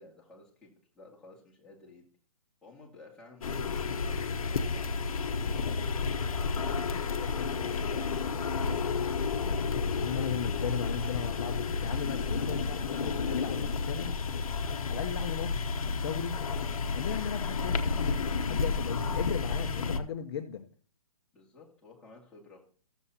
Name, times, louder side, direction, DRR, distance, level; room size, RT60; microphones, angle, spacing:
voice 1, 0.0-2.1 2.6-6.2 21.3-22.6, left 3 dB, 5° left, -6 dB, 2.2 m, -54 dB
sound 1, 3.4-20.0, left 4 dB, 70° left, 0.9 m, -31 dB
voice 2, 9.9-14.1 14.9-16.3 16.9-20.6, left 8 dB, 45° left, 4 dB, 0.8 m, -37 dB
16.0 x 7.1 x 2.8 m, 0.42 s
hypercardioid pair, 155°, 19 cm